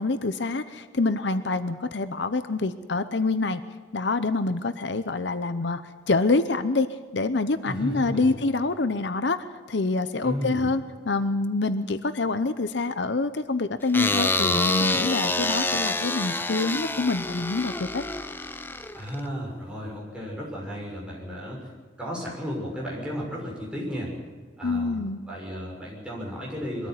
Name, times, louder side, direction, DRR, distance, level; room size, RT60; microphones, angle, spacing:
voice 1, 0.0-3.6 3.9-6.9 7.1-9.4 9.7-18.0 24.6-25.2, left 3 dB, 65° left, 12 dB, 0.8 m, -26 dB
voice 2, 7.6-8.4 10.2-10.7 18.9-21.7 22.0-24.1 24.6-26.9, equal, 5° right, -4 dB, 6.4 m, -34 dB
sound 1, 13.9-19.2, left 2 dB, 10° left, 0.7 m, -27 dB
22.0 x 13.5 x 9.6 m, 1.5 s
head